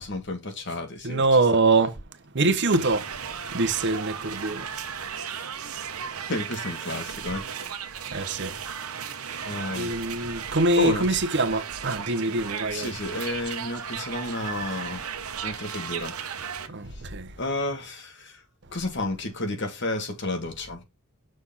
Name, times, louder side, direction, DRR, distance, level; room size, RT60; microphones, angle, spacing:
voice 1, 0.0-1.2 6.3-7.4 9.5-9.9 10.8-11.1 12.7-15.0 15.4-16.1 17.4-18.3 18.7-20.8, left 2 dB, 55° left, 1.8 m, -31 dB
voice 2, 1.0-2.0 2.3-3.1 3.5-4.7 8.1-8.5 9.2-9.4 9.7-12.9 16.7-17.3, right 3 dB, 55° right, 0.9 m, -24 dB
sound 1, 2.7-16.7, right 7 dB, 85° right, 1.0 m, -35 dB
6.4 x 4.0 x 5.5 m
head